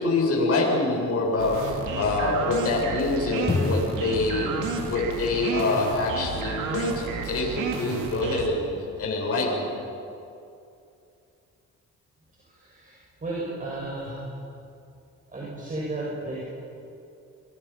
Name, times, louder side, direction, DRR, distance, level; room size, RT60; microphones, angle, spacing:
voice 1, 0.0-4.5 4.8-8.7 9.0-9.7, left 2 dB, 50° left, -3 dB, 8.0 m, -25 dB
sound 1, 1.4-8.5, right 4 dB, 85° right, 3.0 m, -31 dB
Drum, 3.5-7.0, left 3 dB, 20° left, 1.6 m, -32 dB
voice 2, 12.4-14.2 15.3-16.4, right 2 dB, 25° right, -4 dB, 7.0 m, -34 dB
26.0 x 23.5 x 6.0 m, 2.6 s
cardioid pair, 90°, 30 cm